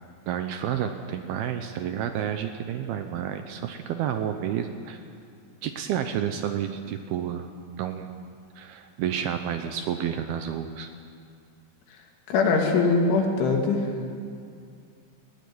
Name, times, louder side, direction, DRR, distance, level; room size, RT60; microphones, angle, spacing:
voice 1, 0.3-5.0 5.6-7.5 7.7-8.3 8.6-10.9, right 9 dB, 80° right, 7 dB, 2.3 m, -30 dB
voice 2, 12.3-13.9, left 4 dB, 85° left, 0 dB, 5.0 m, -22 dB
20.0 x 17.5 x 9.6 m, 2.3 s
omnidirectional pair, 5.4 m